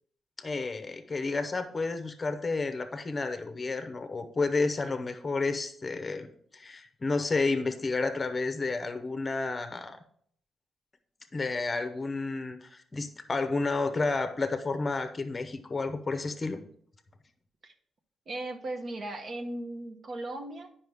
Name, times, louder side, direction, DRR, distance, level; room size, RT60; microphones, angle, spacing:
voice 1, 0.4-6.3 6.5-10.0 11.3-16.6, left 3 dB, 25° left, 9 dB, 0.8 m, -31 dB
voice 2, 18.3-20.7, right 2 dB, 40° right, 5 dB, 0.9 m, -37 dB
9.4 x 5.7 x 3.5 m, 0.62 s
cardioid pair, 140°, 0 cm